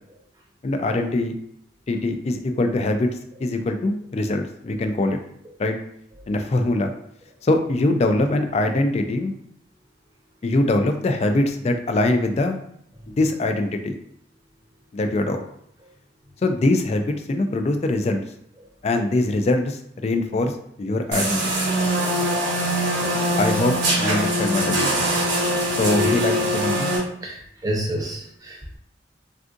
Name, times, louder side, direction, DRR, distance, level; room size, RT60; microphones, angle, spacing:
voice 1, 0.6-1.4 1.9-3.1 3.4-5.2 5.6-5.8 6.3-6.9 7.4-9.3 10.4-12.6 13.2-14.0 14.9-15.4 16.4-18.2 18.8-20.5 20.8-21.4 23.4-25.0 25.8-26.9, left 2 dB, 35° left, 6 dB, 0.3 m, -22 dB
sound 1, 21.1-27.0, right 1 dB, 90° right, 0.9 m, -22 dB
voice 2, 27.2-28.8, equal, 20° right, -1 dB, 0.7 m, -31 dB
3.5 x 2.5 x 2.5 m, 0.69 s
head